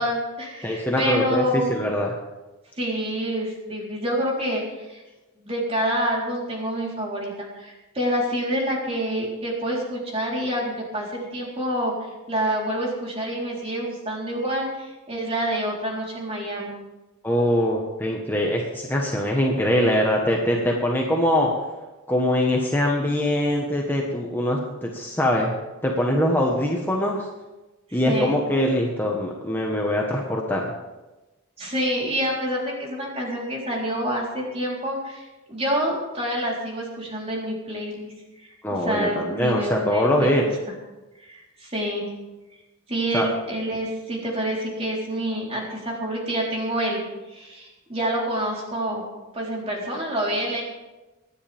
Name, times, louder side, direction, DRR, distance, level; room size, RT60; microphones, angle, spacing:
voice 1, 0.0-1.7 2.8-5.0 5.4-16.7 27.9-28.4 31.6-38.1 38.4-40.5 41.2-42.1 42.9-47.1 47.3-49.0 49.3-50.6, equal, 30° right, -3 dB, 3.9 m, -27 dB
voice 2, 0.6-2.1 17.2-21.5 22.1-27.3 27.9-30.7 38.6-40.5 43.1-43.3, left 1 dB, 10° left, -1 dB, 1.3 m, -23 dB
25.5 x 10.5 x 3.6 m, 1.1 s
head